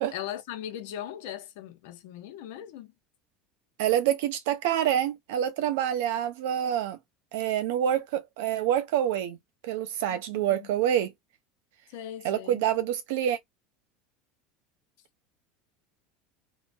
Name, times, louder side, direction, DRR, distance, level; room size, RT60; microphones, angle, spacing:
voice 1, 0.1-2.9 10.1-10.7 11.9-12.6, left 11 dB, 75° left, 0.7 m, -39 dB
voice 2, 3.8-7.0 7.3-9.4 9.6-11.1 12.2-13.4, right 10 dB, 75° right, 0.7 m, -27 dB
3.0 x 2.1 x 2.5 m
supercardioid pair, 105°, 0 cm